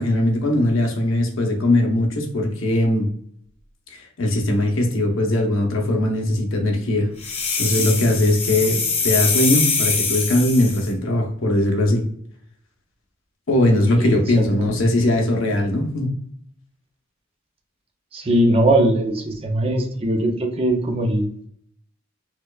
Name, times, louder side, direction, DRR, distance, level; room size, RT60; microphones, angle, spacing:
voice 1, 0.0-3.1 3.9-7.1 7.6-12.0 13.5-16.1, left 1 dB, 85° left, 2 dB, 0.8 m, -20 dB
sound 1, 7.2-10.9, left 5 dB, 30° left, 0.7 m, -23 dB
voice 2, 18.1-21.2, right 1 dB, 30° right, 2 dB, 0.5 m, -20 dB
4.3 x 2.3 x 2.3 m, 0.63 s
head